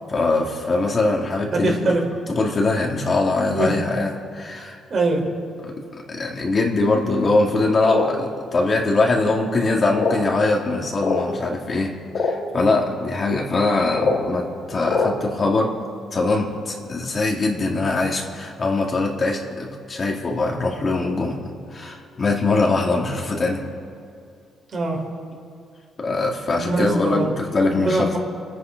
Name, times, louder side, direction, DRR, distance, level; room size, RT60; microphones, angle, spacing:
voice 1, 0.1-2.0 2.3-4.8 5.6-5.7 6.1-11.9 12.1-15.7 16.1-23.6 26.0-28.1, left 3 dB, 40° left, 0 dB, 2.6 m, -22 dB
voice 2, 1.5-2.0 3.5-3.7 4.9-5.2 24.7-25.0 26.6-27.3 27.7-28.2, right 2 dB, 50° right, -1 dB, 4.6 m, -22 dB
sound 1, 7.8-8.1 9.0-9.1 9.9-10.3 11.0-11.2 12.1-12.3 13.9-14.2 14.8-15.1, left 4 dB, 60° left, 3.2 m, -22 dB
26.5 x 10.0 x 5.3 m, 2.5 s
cardioid pair, 90°, 0 cm